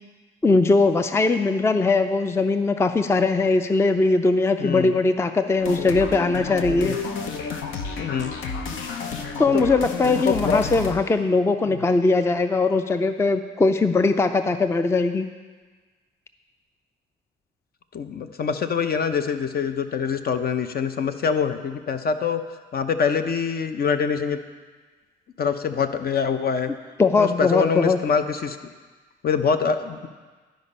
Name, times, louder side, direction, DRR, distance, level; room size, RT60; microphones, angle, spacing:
voice 1, 0.4-6.9 9.4-15.2 27.0-28.0, left 3 dB, 15° left, 9 dB, 0.4 m, -20 dB
voice 2, 4.6-5.0 6.8-7.0 8.0-8.3 9.5-9.6 10.1-10.6 11.7-11.8 17.9-22.4 22.7-24.4 25.4-26.7 27.2-28.6 29.2-30.1, left 6 dB, 50° left, 9 dB, 0.6 m, -24 dB
sound 1, 5.6-10.9, left 4 dB, 90° left, 0.8 m, -31 dB
11.5 x 5.2 x 5.4 m, 1.4 s
cardioid pair, 90°, 20 cm